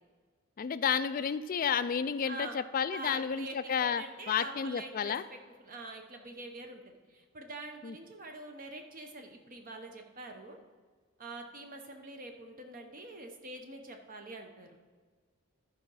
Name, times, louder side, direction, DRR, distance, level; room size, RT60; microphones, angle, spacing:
voice 1, 0.6-5.2 7.8-7.9, left 7 dB, 40° left, 13 dB, 0.3 m, -31 dB
voice 2, 2.2-2.6 2.9-10.6 11.2-14.8, right 2 dB, 40° right, 4 dB, 0.9 m, -45 dB
11.5 x 4.9 x 5.6 m, 1.5 s
head